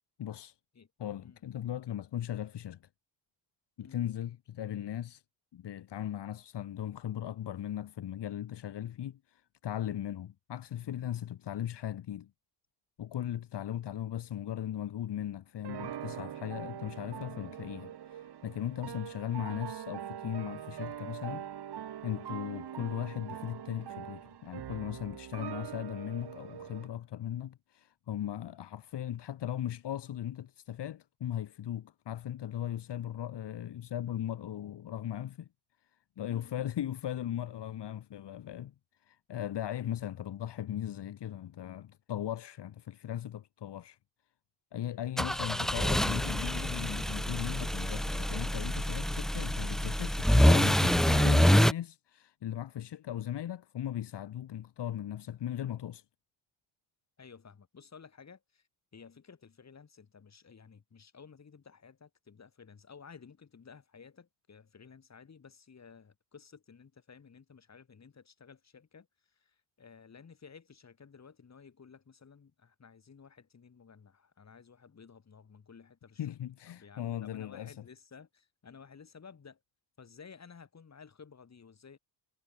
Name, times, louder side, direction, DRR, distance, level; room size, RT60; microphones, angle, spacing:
voice 1, 0.2-0.5 1.0-2.8 3.8-5.2 5.5-12.3 13.0-21.5 22.0-35.5 36.2-38.7 39.1-44.0 44.7-56.0 76.2-77.7, left 11 dB, 65° left, 3.2 m, -38 dB
sound 1, 15.6-26.9, right 10 dB, 60° right, 3.7 m, -43 dB
voice 2, 36.2-36.7 39.3-39.5 45.1-45.9 57.2-58.7 58.9-76.3 76.7-79.6 80.0-82.0, left 6 dB, 35° left, 6.5 m, -54 dB
sound 2, 45.2-51.7, equal, ahead, 0.4 m, -26 dB
cardioid pair, 110°, 44 cm